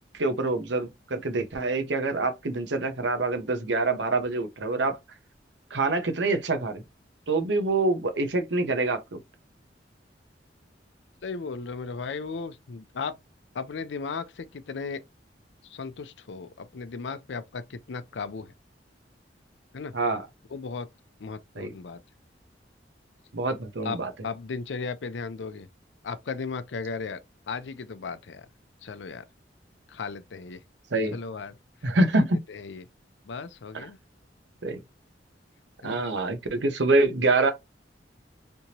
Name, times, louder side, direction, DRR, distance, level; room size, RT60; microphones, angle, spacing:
voice 1, 0.1-5.0 5.7-6.8 7.3-9.2 19.9-20.2 21.6-21.7 23.3-24.1 30.9-31.2 31.8-32.4 34.6-34.8 35.8-37.5, right 2 dB, 85° right, 0.9 m, -25 dB
voice 2, 11.2-13.1 13.5-15.0 15.6-18.5 19.7-19.9 20.5-20.9 21.2-22.0 23.8-24.0 24.2-25.7 26.0-27.2 27.5-28.5 28.8-29.2 29.9-30.6 31.1-31.6 32.5-32.9 33.3-34.0 35.8-36.0, left 4 dB, 85° left, 0.5 m, -36 dB
3.4 x 2.9 x 2.8 m
head